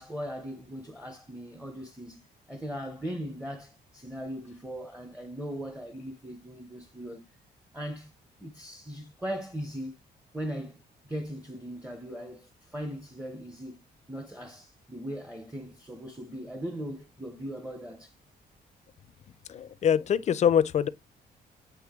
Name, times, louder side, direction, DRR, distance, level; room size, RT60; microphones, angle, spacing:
voice 1, 0.0-7.3 7.7-8.1 8.4-9.9 10.3-10.8 11.1-13.8 14.1-18.1, equal, 5° right, 0.6 m, -39 dB
voice 2, 19.5-20.9, left 8 dB, 40° left, 0.4 m, -24 dB
8.4 x 3.3 x 3.6 m
cardioid pair, 150°, 17 cm